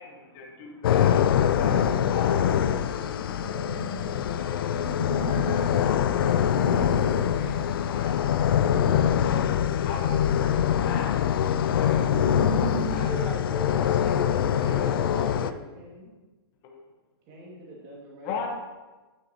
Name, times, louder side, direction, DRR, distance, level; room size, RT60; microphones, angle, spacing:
voice 1, 0.0-13.1 16.6-16.8 18.2-18.5, left 5 dB, 25° left, 1 dB, 1.1 m, -41 dB
sound 1, 0.8-15.5, left 9 dB, 60° left, 0.4 m, -24 dB
sound 2, 1.5-13.0, right 4 dB, 60° right, 1.9 m, -38 dB
voice 2, 12.7-15.6, right 1 dB, 10° right, -1 dB, 1.0 m, -38 dB
voice 3, 14.6-16.1 17.3-18.5, right 2 dB, 30° right, -3 dB, 2.1 m, -43 dB
9.8 x 6.3 x 2.9 m, 1.2 s
hypercardioid pair, 160°, 13 cm